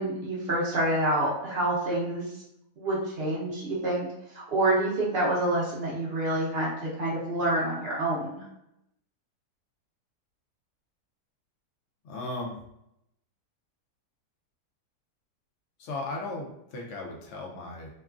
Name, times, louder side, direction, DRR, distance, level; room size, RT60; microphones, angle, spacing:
voice 1, 0.0-2.3 2.8-4.1 4.3-8.5, right 1 dB, 50° right, -5 dB, 0.8 m, -27 dB
voice 2, 12.0-12.6 15.8-17.9, left 2 dB, 70° left, -1 dB, 0.7 m, -36 dB
2.9 x 2.3 x 2.3 m, 0.81 s
omnidirectional pair, 1.8 m